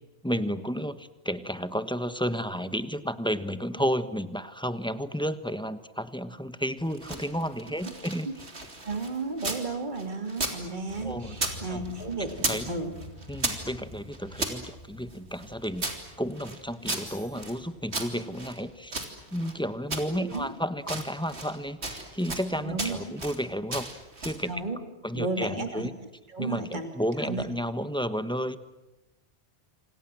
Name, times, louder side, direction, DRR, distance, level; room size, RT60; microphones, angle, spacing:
voice 1, 0.2-8.3 11.0-11.4 11.7-11.8 12.4-12.7 13.3-15.9 16.2-18.9 19.3-23.9 24.2-24.5 25.0-25.9 26.4-28.6, equal, 5° left, 11 dB, 1.2 m, -32 dB
sound 1, 6.8-9.7 10.0-11.6 11.8-12.7 13.0-14.6 15.1-17.6 17.9-19.6 19.9-20.5 20.8-21.6 21.8-22.5 22.8-23.4 23.7-24.5, right 2 dB, 80° right, 3.6 m, -35 dB
voice 2, 8.8-13.0 20.1-20.5 22.6-23.0 24.5-24.8 25.1-25.9 26.3-26.9 27.2-27.4, right 3 dB, 45° right, 6 dB, 2.8 m, -33 dB
sound 2, 10.9-19.3, left 1 dB, 55° left, 2.7 m, -48 dB
sound 3, 17.1-18.4, left 3 dB, 75° left, 5.0 m, -55 dB
27.5 x 27.5 x 7.7 m, 1.0 s
omnidirectional pair, 1.1 m